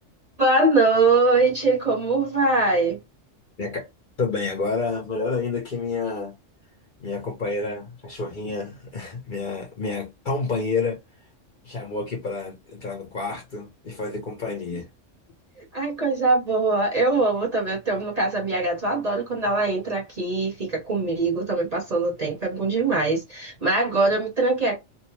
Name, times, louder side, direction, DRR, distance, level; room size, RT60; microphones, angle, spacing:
voice 1, 0.4-3.0 15.6-24.8, right 3 dB, 35° right, 0.8 m, -22 dB
voice 2, 4.2-6.4 7.0-11.0 11.6-14.9, left 4 dB, 45° left, 0.8 m, -29 dB
2.7 x 2.1 x 2.9 m
omnidirectional pair, 1.3 m